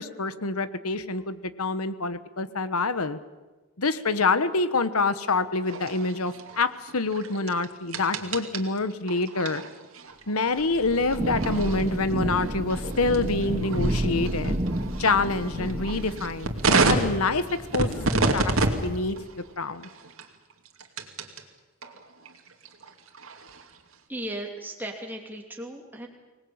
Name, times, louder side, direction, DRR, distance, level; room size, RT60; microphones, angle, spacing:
voice 1, 0.0-3.2 3.8-9.6 10.3-14.6 15.0-18.5 18.8-19.2 19.6-19.9, left 3 dB, 80° left, 13 dB, 1.3 m, -26 dB
sound 1, 5.6-21.4 21.8-23.9, right 3 dB, 70° right, 2.5 m, -31 dB
Thunder / Rain, 10.6-19.2, right 1 dB, 30° right, 1.3 m, -31 dB
voice 2, 24.1-26.1, right 1 dB, 10° right, 1 dB, 2.9 m, -36 dB
25.0 x 19.5 x 8.8 m, 1.2 s
head